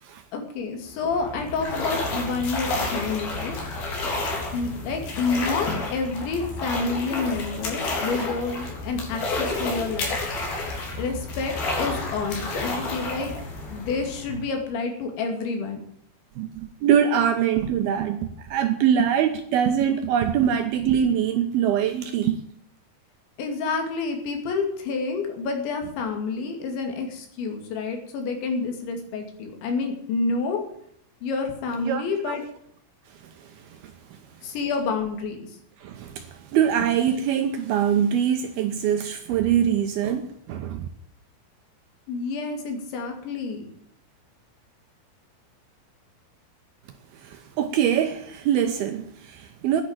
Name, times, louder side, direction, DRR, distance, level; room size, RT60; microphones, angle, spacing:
voice 1, 0.3-3.6 4.5-10.2 11.0-13.3 13.7-15.8 23.4-30.6 31.2-32.4 34.4-35.5 42.1-43.7, left 4 dB, 80° left, 4.8 m, -29 dB
sound 1, 0.9-14.6, left 2 dB, 60° left, 5.1 m, -30 dB
voice 2, 16.4-22.4 31.8-32.4 33.4-34.2 35.8-40.9 47.2-49.8, right 9 dB, 75° right, 2.3 m, -24 dB
10.5 x 10.5 x 8.9 m
omnidirectional pair, 5.2 m